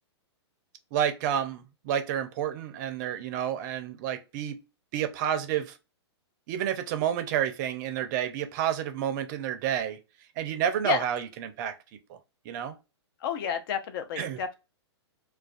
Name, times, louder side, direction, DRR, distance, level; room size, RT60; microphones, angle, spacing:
voice 1, 0.9-4.6 4.9-5.7 6.5-10.0 10.4-11.8 12.1-12.2 12.5-12.7 14.2-14.4, right 9 dB, 40° right, 0.5 m, -30 dB
voice 2, 13.2-14.5, left 7 dB, 50° left, 0.5 m, -30 dB
2.3 x 2.2 x 2.4 m
hypercardioid pair, 130°, 15 cm